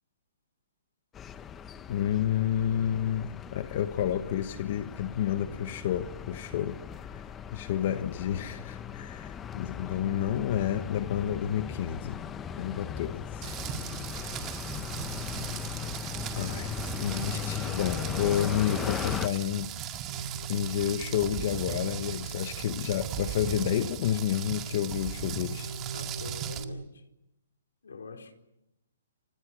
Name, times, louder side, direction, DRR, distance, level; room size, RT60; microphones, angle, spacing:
sound 1, 1.1-19.3, left 8 dB, 15° left, 0.9 m, -38 dB
voice 1, 1.9-6.8 7.1-12.2 12.5-13.6 13.8-14.4 16.4-25.7, left 10 dB, 45° left, 1.2 m, -30 dB
Rain, 13.4-26.6, right 9 dB, 20° right, 1.9 m, -38 dB
sound 2, 20.0-26.8, right 4 dB, 80° right, 1.4 m, -42 dB
voice 2, 25.9-27.0 27.8-28.3, left 4 dB, 90° left, 4.3 m, -44 dB
30.0 x 25.5 x 6.3 m
hypercardioid pair, 160°, 0 cm